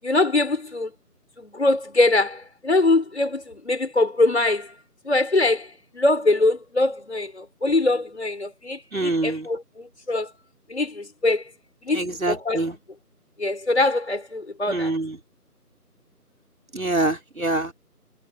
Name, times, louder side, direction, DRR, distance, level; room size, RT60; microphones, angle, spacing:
voice 1, 0.0-0.9 1.4-4.7 5.0-10.3 10.7-11.4 11.8-12.7 13.4-14.9, left 2 dB, 45° left, 6.2 m, -23 dB
voice 2, 8.9-9.5 11.9-12.7 14.7-15.2 16.7-17.7, right 2 dB, 60° right, 5.0 m, -25 dB
figure-of-eight pair, 175°, 47 cm